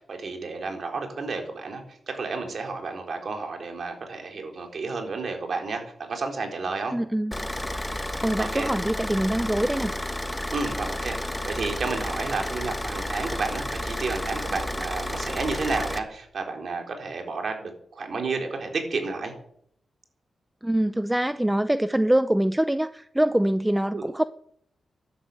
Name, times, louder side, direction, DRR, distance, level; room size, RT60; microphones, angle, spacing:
voice 1, 0.0-7.0 8.4-8.7 10.5-19.3 23.9-24.1, right 4 dB, 60° right, 4 dB, 4.1 m, -31 dB
voice 2, 6.9-7.4 8.2-9.9 20.6-24.2, right 1 dB, 10° right, 12 dB, 0.6 m, -24 dB
Car / Idling, 7.3-16.0, left 1 dB, 10° left, 1.4 m, -31 dB
13.5 x 11.5 x 8.0 m, 0.67 s
cardioid pair, 90°, 0 cm